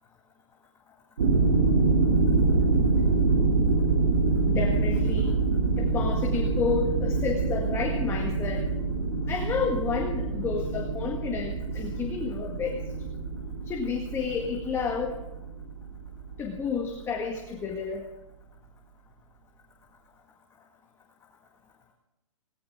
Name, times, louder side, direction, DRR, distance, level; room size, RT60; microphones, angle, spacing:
sound 1, 1.2-17.0, right 3 dB, 70° right, 3.3 m, -26 dB
voice 1, 4.5-5.4 5.8-8.7 9.3-12.8 13.7-15.2 16.4-18.1, left 5 dB, 15° left, 0 dB, 1.9 m, -31 dB
20.5 x 18.5 x 3.8 m, 0.96 s
hypercardioid pair, 130°, 17 cm